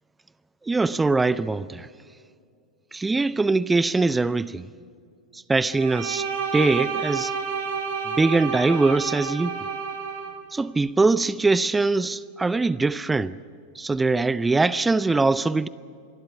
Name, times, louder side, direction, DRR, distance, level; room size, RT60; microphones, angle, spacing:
voice 1, 0.6-1.9 2.9-4.7 5.3-6.3 6.5-7.3 8.1-9.5 10.5-13.4 13.8-15.7, right 3 dB, 10° right, 0.5 m, -22 dB
Bowed string instrument, 5.7-10.4, right 5 dB, 60° right, 3.6 m, -30 dB
26.0 x 12.0 x 9.8 m
figure-of-eight pair, 90°, 0 cm